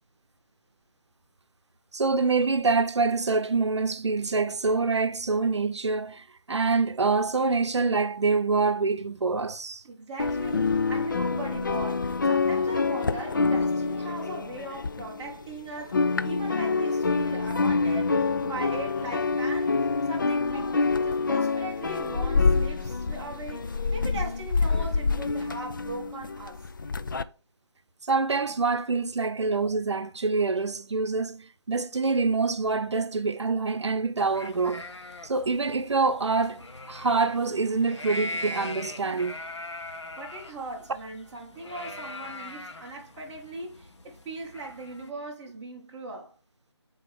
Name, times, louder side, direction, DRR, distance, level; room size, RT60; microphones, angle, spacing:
voice 1, 1.9-9.8 28.1-34.9 35.2-39.4, right 4 dB, 80° right, 0.7 m, -26 dB
voice 2, 9.8-19.8 20.1-20.8 21.0-26.7 40.2-46.3, right 2 dB, 10° right, 1.3 m, -39 dB
sound 1, 10.2-15.5 15.8-27.2, left 4 dB, 45° left, 0.4 m, -26 dB
sound 2, 34.2-45.1, left 2 dB, 85° left, 1.2 m, -41 dB
7.6 x 4.2 x 3.4 m
figure-of-eight pair, 170°, 14 cm